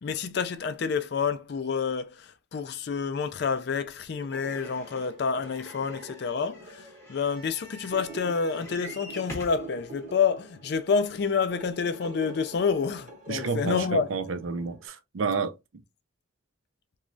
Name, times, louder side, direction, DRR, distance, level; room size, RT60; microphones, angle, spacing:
voice 1, 0.0-14.1, left 5 dB, 55° left, 0.4 m, -28 dB
sound 1, 4.1-14.9, right 2 dB, 40° right, 0.9 m, -46 dB
sound 2, 4.3-9.7 10.4-10.5 10.7-10.8, equal, 15° left, 0.7 m, -46 dB
voice 2, 13.3-15.5, right 4 dB, 80° right, 0.5 m, -30 dB
3.0 x 2.3 x 2.5 m
head